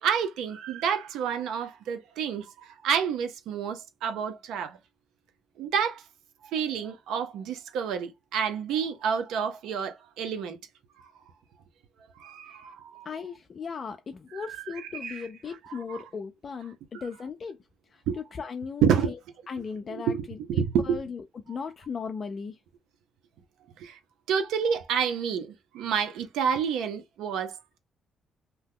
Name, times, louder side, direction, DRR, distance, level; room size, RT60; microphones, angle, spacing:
voice 1, 0.0-4.8 5.6-6.0 6.5-10.6 12.2-13.1 14.3-15.3 15.6-16.0 16.9-17.0 18.1-18.2 18.8-19.1 19.9-21.0 23.8-24.0 24.3-27.8, right 7 dB, 85° right, 0.6 m, -29 dB
voice 2, 13.1-17.6 17.9-18.0 18.4-19.2 19.5-20.4 20.8-22.6, left 5 dB, 45° left, 0.4 m, -37 dB
2.8 x 2.2 x 3.6 m
cardioid pair, 90°, 0 cm